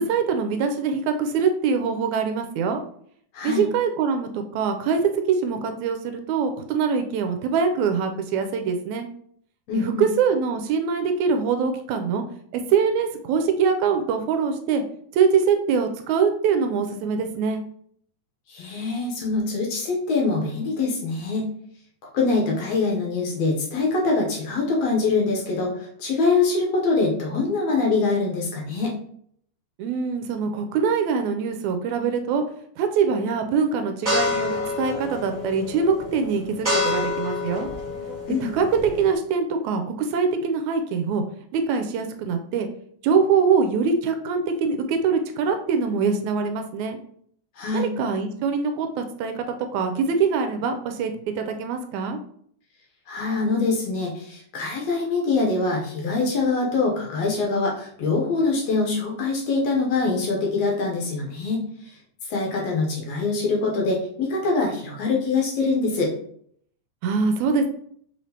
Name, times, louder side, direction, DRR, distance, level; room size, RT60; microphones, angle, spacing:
voice 1, 0.0-2.8 3.4-9.1 9.7-12.2 12.5-14.8 15.1-17.6 29.8-32.4 32.8-37.7 38.4-41.2 41.5-42.7 43.0-47.0 47.7-49.5 49.7-52.2 67.0-67.7, right 5 dB, 80° right, 6 dB, 1.9 m, -23 dB
voice 2, 3.3-3.6 9.7-10.1 18.5-21.5 22.1-28.9 38.3-38.5 47.6-47.9 53.1-61.6 62.2-66.1, left 3 dB, 70° left, -1 dB, 1.8 m, -24 dB
sound 1, 34.1-39.1, left 3 dB, 20° right, 1.3 m, -28 dB
5.7 x 3.1 x 2.8 m, 0.64 s
omnidirectional pair, 3.4 m